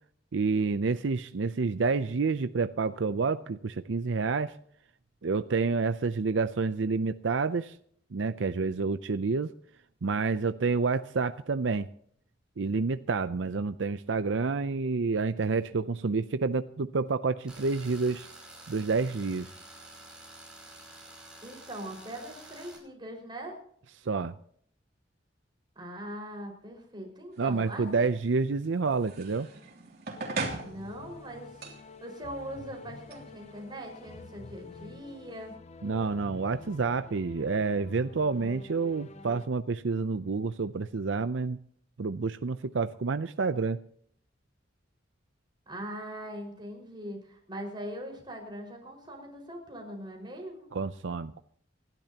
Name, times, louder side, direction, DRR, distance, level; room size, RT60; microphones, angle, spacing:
voice 1, 0.3-4.5 5.2-7.7 8.1-9.5 10.0-11.9 12.6-18.3 18.7-19.5 24.0-24.3 27.4-29.5 35.8-41.6 42.0-43.8 50.7-51.4, right 4 dB, 80° right, 11 dB, 0.6 m, -29 dB
Tools, 17.5-22.8, right 2 dB, 5° right, 5.9 m, -49 dB
voice 2, 21.4-23.6 25.8-28.1 30.6-31.6 32.0-35.5 45.7-50.7, right 1 dB, 25° right, 1 dB, 5.2 m, -41 dB
sound 1, 27.3-35.5, right 3 dB, 55° right, 3.1 m, -42 dB
sound 2, 30.2-39.5, left 3 dB, 35° left, 0.7 m, -48 dB
27.5 x 12.0 x 2.9 m, 0.64 s
head